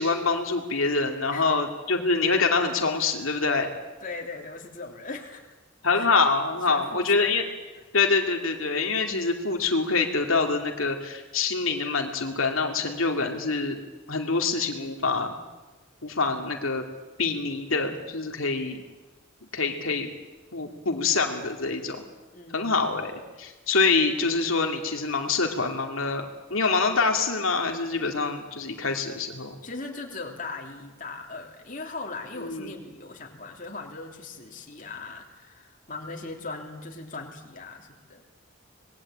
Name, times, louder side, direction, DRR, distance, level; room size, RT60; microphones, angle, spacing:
voice 1, 0.0-3.7 5.8-7.4 7.9-13.8 14.1-15.4 16.0-16.8 17.2-18.8 19.5-20.1 20.5-22.0 22.5-26.2 26.5-29.6 32.4-32.7, left 4 dB, 80° left, 3 dB, 2.5 m, -25 dB
voice 2, 4.0-5.5 5.9-6.1 6.7-7.3 7.8-7.9 22.3-22.9 29.6-38.2, left 3 dB, 40° left, 2 dB, 3.2 m, -39 dB
26.0 x 20.0 x 8.7 m, 1.2 s
head